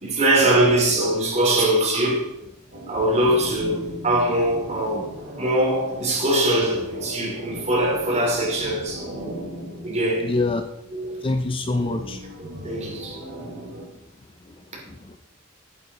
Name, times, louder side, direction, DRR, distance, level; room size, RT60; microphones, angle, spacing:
voice 1, 0.0-2.3 2.9-9.1 9.8-10.3 10.9-11.2 12.4-13.2, right 1 dB, 35° right, 2.8 m, -22 dB
sound 1, 2.7-10.9 11.7-13.8, right 1 dB, 50° right, 2.6 m, -38 dB
voice 2, 10.2-10.7 11.2-12.2 14.5-15.2, left 2 dB, 25° left, 0.5 m, -26 dB
8.9 x 8.3 x 4.0 m
head